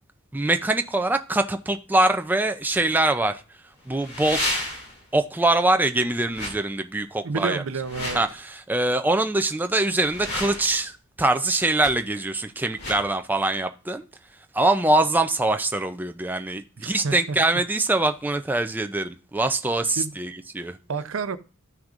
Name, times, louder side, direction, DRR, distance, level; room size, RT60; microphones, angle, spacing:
voice 1, 0.3-3.4 3.9-4.6 5.1-7.6 8.1-10.9 11.2-14.1 14.5-20.8, right 2 dB, 10° right, 0.4 m, -23 dB
sound 1, 2.0-2.1 3.9-5.0 6.3-6.6 7.7-8.3 9.9-10.8 11.8-11.9 12.7-13.0, left 1 dB, 55° left, 2.5 m, -31 dB
voice 2, 7.2-8.2 16.8-17.4 20.0-20.2 20.9-21.4, right 4 dB, 75° right, 0.6 m, -29 dB
13.0 x 6.1 x 2.5 m
head